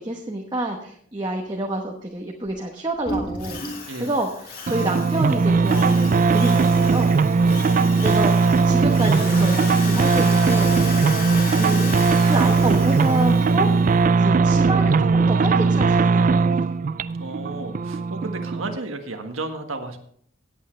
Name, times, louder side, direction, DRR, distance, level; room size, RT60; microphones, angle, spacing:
voice 1, 0.0-3.6 4.0-7.1 8.0-11.1 11.5-11.9 12.2-13.7 14.1-16.7, right 1 dB, 20° right, 0 dB, 1.0 m, -28 dB
sound 1, 2.5-2.6 2.9-3.9 5.0-5.1 5.6-5.7 5.9-6.4, right 1 dB, 25° left, 2.3 m, -31 dB
Drill, 3.4-13.8, left 4 dB, 45° left, 2.9 m, -35 dB
sound 2, 4.7-18.8, right 4 dB, 40° right, 0.3 m, -19 dB
voice 2, 7.5-7.8 17.2-20.0, right 2 dB, 85° right, 5 dB, 1.5 m, -33 dB
18.0 x 8.4 x 3.3 m, 0.63 s
head